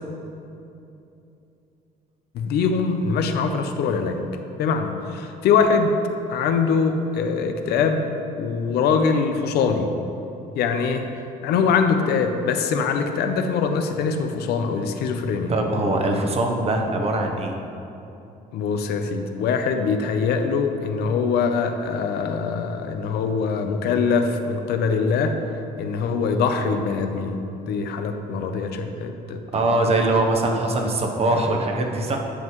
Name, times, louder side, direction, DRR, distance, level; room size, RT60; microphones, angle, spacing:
voice 1, 2.3-4.2 4.6-6.0 6.3-8.0 8.4-9.9 10.5-11.1 11.4-15.5 18.5-25.4 25.8-27.4 27.7-29.4, left 5 dB, 75° left, 6 dB, 0.6 m, -23 dB
voice 2, 15.5-17.6 29.5-32.2, right 2 dB, 35° right, 2 dB, 0.9 m, -22 dB
9.9 x 5.5 x 3.1 m, 2.8 s
cardioid pair, 110°, 17 cm